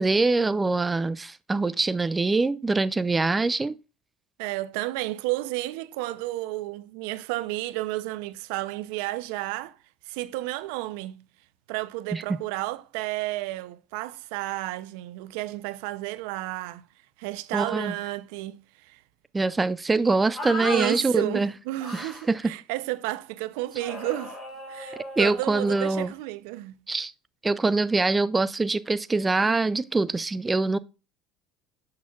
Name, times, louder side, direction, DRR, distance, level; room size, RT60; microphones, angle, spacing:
voice 1, 0.0-3.7 12.1-12.4 17.5-17.9 19.3-21.5 21.9-22.4 25.2-26.1 26.9-27.1 27.4-30.8, right 3 dB, 15° right, 0.3 m, -24 dB
voice 2, 4.4-9.8 10.1-11.2 11.7-16.8 17.2-19.0 20.6-24.4 24.7-26.7, right 17 dB, 80° right, 0.5 m, -32 dB
sound 1, 20.3-21.0 21.8-22.3 23.8-26.1, left 1 dB, 15° left, 3.3 m, -36 dB
7.1 x 6.4 x 2.3 m
supercardioid pair, 110°, 0 cm